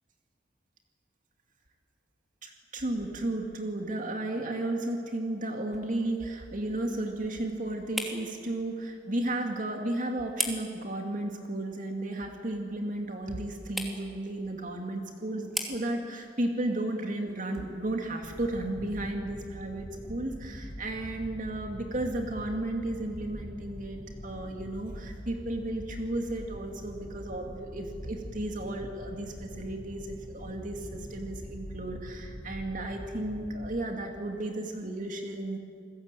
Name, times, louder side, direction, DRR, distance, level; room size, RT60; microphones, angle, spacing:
voice 1, 2.4-35.6, right 1 dB, 45° right, 3 dB, 2.5 m, -34 dB
sound 1, 4.4-19.2, equal, ahead, 2.9 m, -43 dB
sound 2, 18.2-33.9, equal, 25° left, 1.7 m, -44 dB
29.0 x 20.5 x 9.2 m, 2.3 s
head